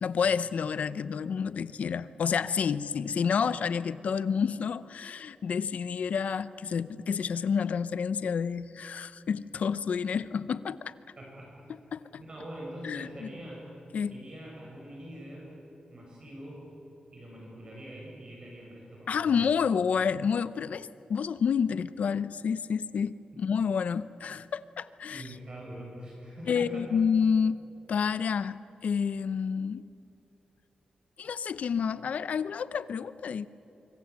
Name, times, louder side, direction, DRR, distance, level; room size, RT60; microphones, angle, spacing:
voice 1, 0.0-10.9 11.9-12.2 12.8-13.3 13.9-14.2 19.1-25.2 26.5-27.6 27.9-29.9 31.2-33.5, left 6 dB, 70° left, 15 dB, 0.7 m, -29 dB
voice 2, 11.2-11.7 12.2-13.6 14.1-15.5 15.9-16.7 17.1-19.4 23.3-23.4 25.1-27.0, right 1 dB, 35° right, -3 dB, 6.3 m, -44 dB
25.0 x 25.0 x 8.2 m, 2.9 s
wide cardioid pair, 165°, 3 cm